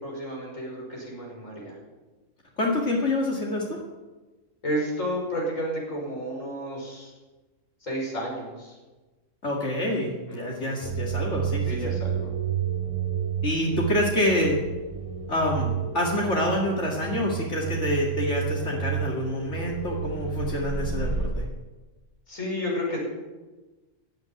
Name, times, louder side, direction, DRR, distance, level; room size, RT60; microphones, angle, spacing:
voice 1, 0.0-1.7 4.6-7.1 7.8-8.7 10.3-10.8 11.7-12.3 22.3-23.0, equal, 85° left, -2 dB, 6.2 m, -32 dB
voice 2, 2.6-3.8 9.4-11.9 13.4-14.6 15.3-21.4, left 1 dB, 65° left, -2 dB, 2.5 m, -27 dB
sound 1, 10.8-21.3, right 7 dB, 30° right, 1.3 m, -30 dB
16.0 x 9.6 x 9.1 m, 1.2 s
omnidirectional pair, 1.3 m